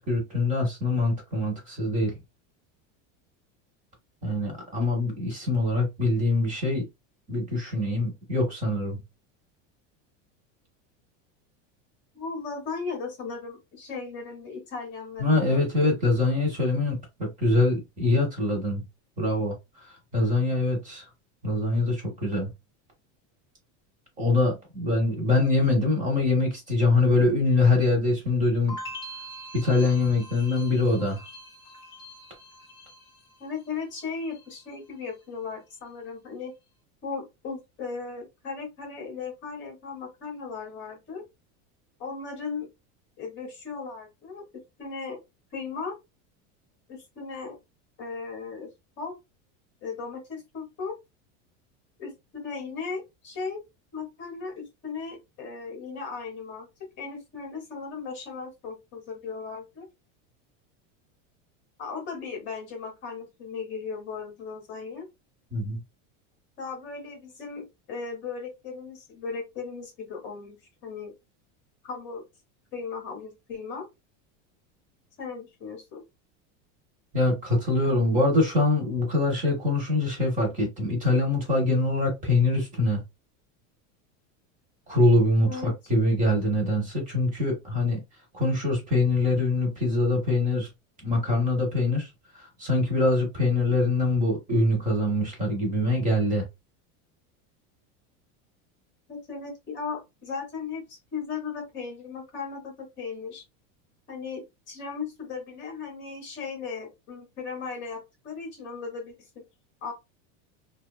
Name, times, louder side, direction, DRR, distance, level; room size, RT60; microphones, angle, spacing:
voice 1, 0.0-2.2 4.2-6.9 7.3-9.0 15.2-18.8 19.2-19.5 20.1-21.0 21.4-22.5 24.2-28.8 29.5-31.2 65.5-65.8 77.1-83.0 84.9-88.0 88.3-90.7 91.0-92.1 92.4-96.4, left 2 dB, 20° right, 0.7 m, -24 dB
voice 2, 12.1-15.6 33.4-36.5 37.0-41.2 42.0-42.7 43.2-44.4 44.8-45.2 45.5-46.0 46.9-47.6 48.0-48.7 49.0-49.1 49.8-50.9 52.0-53.6 53.9-56.7 57.0-59.9 61.8-65.1 66.6-70.6 70.8-71.1 71.8-72.2 72.7-73.9 75.2-76.0 85.5-85.7 99.1-103.4 104.1-109.4 109.8-109.9, left 5 dB, 30° left, 0.8 m, -37 dB
sound 1, 28.7-33.7 34.0-34.7, equal, 15° left, 0.4 m, -43 dB
2.8 x 2.3 x 2.2 m
supercardioid pair, 165°, 37 cm